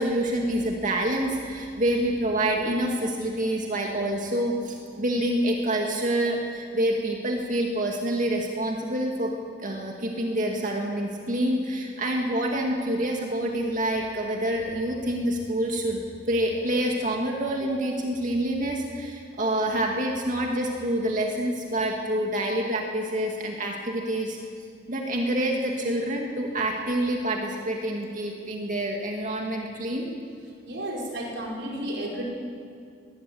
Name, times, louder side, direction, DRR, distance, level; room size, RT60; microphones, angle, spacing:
voice 1, 0.0-9.3 9.6-16.0 16.3-24.4 24.9-30.1, right 1 dB, 45° right, 0 dB, 2.1 m, -27 dB
voice 2, 30.7-32.2, right 1 dB, 75° right, -2 dB, 5.3 m, -32 dB
21.5 x 17.5 x 7.8 m, 2.3 s
head